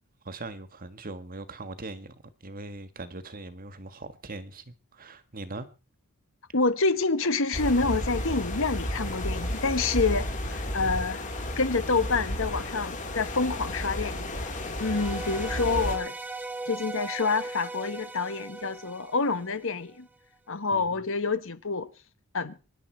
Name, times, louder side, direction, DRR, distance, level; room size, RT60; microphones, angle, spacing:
voice 1, 0.2-5.7 20.7-21.0, right 2 dB, 40° right, 1.5 m, -41 dB
voice 2, 6.5-11.2 11.6-14.3 14.8-16.1 16.7-20.1 20.5-21.9 22.3-22.5, left 4 dB, 65° left, 1.4 m, -27 dB
sound 1, 7.5-16.0, left 1 dB, 35° left, 3.6 m, -32 dB
sound 2, 14.7-20.0, right 3 dB, 10° right, 1.3 m, -38 dB
24.0 x 10.5 x 4.5 m
head